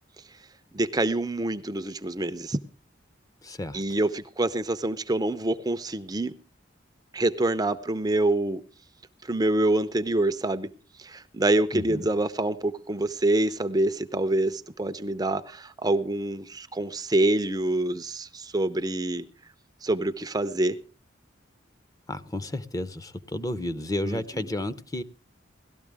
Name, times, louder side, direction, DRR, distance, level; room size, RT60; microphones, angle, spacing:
voice 1, 0.7-2.6 3.7-6.4 7.1-8.6 9.2-10.7 11.0-19.3 19.8-20.8 24.0-24.2, right 2 dB, 20° right, 0.6 m, -26 dB
voice 2, 3.4-4.0 11.7-12.1 22.1-25.0, left 1 dB, 20° left, 0.7 m, -32 dB
18.0 x 13.0 x 3.5 m
head